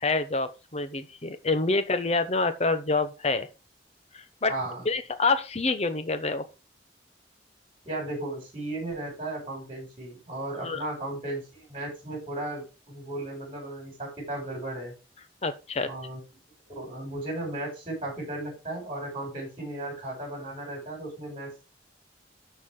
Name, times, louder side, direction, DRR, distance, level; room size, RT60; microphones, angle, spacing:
voice 1, 0.0-3.5 4.1-4.5 4.8-6.5 10.6-10.8 15.4-15.9, left 3 dB, 35° left, 0.9 m, -27 dB
voice 2, 4.5-4.8 7.8-14.9 15.8-16.2 16.7-21.7, right 1 dB, 30° right, 6.3 m, -35 dB
12.5 x 4.7 x 3.8 m
head